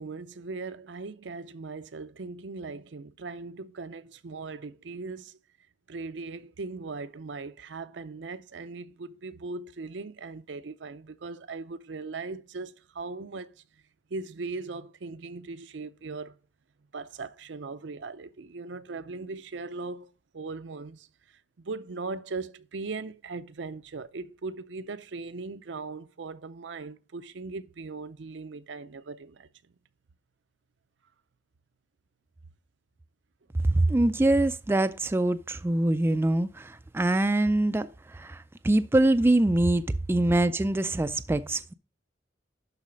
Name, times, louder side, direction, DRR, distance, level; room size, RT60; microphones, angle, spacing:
voice 1, 0.0-5.4 5.9-13.6 14.1-16.4 16.9-21.1 21.6-29.5 40.1-40.3, right 3 dB, 70° right, 0.6 m, -39 dB
voice 2, 33.6-41.7, right 1 dB, 15° right, 0.3 m, -24 dB
11.5 x 4.1 x 5.0 m
head